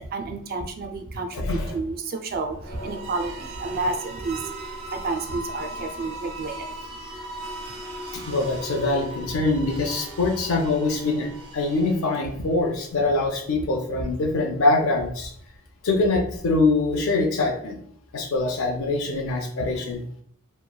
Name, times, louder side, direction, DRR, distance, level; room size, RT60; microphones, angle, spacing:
voice 1, 0.0-4.5 4.9-6.7, right 3 dB, 45° right, 5 dB, 0.3 m, -30 dB
voice 2, 1.4-1.8 8.1-15.3 15.8-17.8 18.1-20.0, left 2 dB, 75° left, 2 dB, 0.4 m, -24 dB
sound 1, 2.5-12.5, right 1 dB, 75° right, 0.8 m, -38 dB
3.0 x 2.2 x 2.2 m, 0.63 s
head